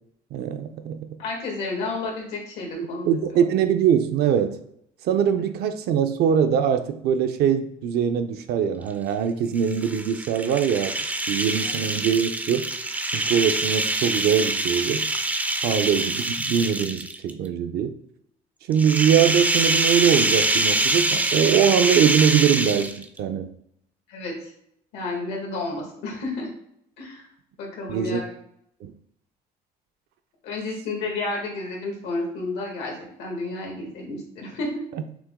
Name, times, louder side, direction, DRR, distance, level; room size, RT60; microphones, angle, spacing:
voice 1, 0.3-1.2 2.8-4.6 5.0-10.9 11.3-12.7 13.1-15.1 15.6-18.0 18.7-23.5 27.9-28.2 28.8-28.9, right 8 dB, 75° right, 8 dB, 0.5 m, -22 dB
voice 2, 1.2-3.1 11.6-11.7 15.7-15.8 24.1-24.5 24.9-26.5 27.0-27.3 27.6-28.3 30.4-34.7, left 3 dB, 90° left, -1 dB, 1.5 m, -31 dB
sound 1, 9.6-17.3 18.7-23.2, right 2 dB, 10° right, 0.3 m, -25 dB
6.0 x 2.1 x 3.5 m, 0.73 s
cardioid pair, 110°, 17 cm